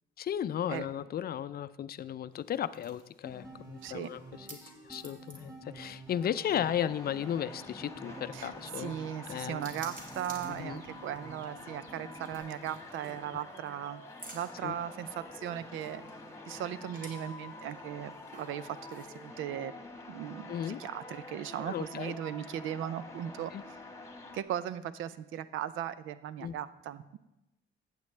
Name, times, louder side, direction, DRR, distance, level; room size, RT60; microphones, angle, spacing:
voice 1, 0.2-4.6 4.8-8.9 9.3-9.6 10.5-10.8 14.6-14.7 20.5-20.8 21.6-22.1 23.5-23.6 26.4-26.5, left 10 dB, 50° left, 15 dB, 0.4 m, -35 dB
sound 1, 2.3-19.3, right 2 dB, 45° right, 2.2 m, -55 dB
sound 2, 3.2-12.4, right 2 dB, 20° right, 4.6 m, -50 dB
sound 3, 6.5-24.4, left 2 dB, 15° left, 1.4 m, -48 dB
voice 2, 8.3-14.0 14.3-16.0 16.5-19.7 20.1-23.8 24.3-27.2, right 10 dB, 80° right, 15 dB, 0.5 m, -38 dB
14.5 x 8.2 x 3.3 m, 0.95 s
cardioid pair, 90°, 20 cm